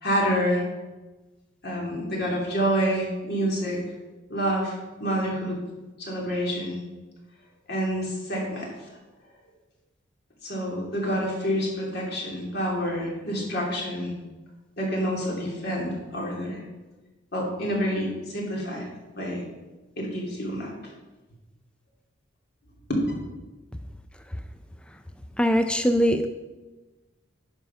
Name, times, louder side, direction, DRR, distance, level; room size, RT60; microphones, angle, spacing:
voice 1, 0.0-0.6 1.6-3.8 4.3-4.7 5.0-5.6 6.0-6.8 7.7-8.7 10.4-14.1 14.8-16.6 17.3-18.9 19.2-19.4 20.0-20.7 22.9-23.0, equal, 55° left, -2 dB, 2.7 m, -27 dB
voice 2, 25.4-26.3, equal, 5° left, 8 dB, 0.3 m, -21 dB
10.5 x 5.5 x 5.7 m, 1.2 s
head